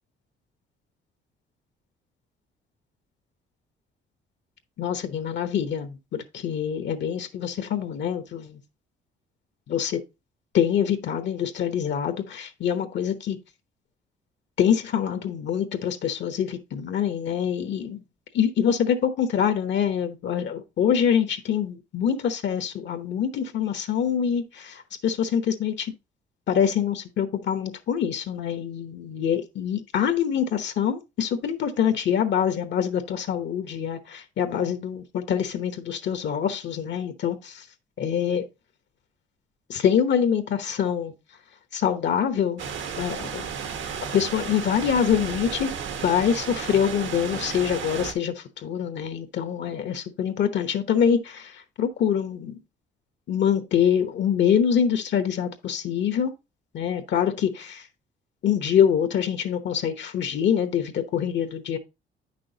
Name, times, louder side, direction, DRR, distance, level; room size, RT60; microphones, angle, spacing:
voice 1, 4.8-8.6 9.7-10.0 10.5-13.4 14.6-18.0 18.3-25.9 26.5-37.6 38.0-38.4 39.7-41.1 41.7-42.6 43.0-43.5 44.1-45.7 46.0-52.6 53.3-56.3 56.7-57.8 58.4-61.8, left 8 dB, 65° left, 1.0 m, -25 dB
sound 1, 42.6-48.1, right 7 dB, 75° right, 1.3 m, -33 dB
8.7 x 6.1 x 2.8 m
cardioid pair, 90°, 20 cm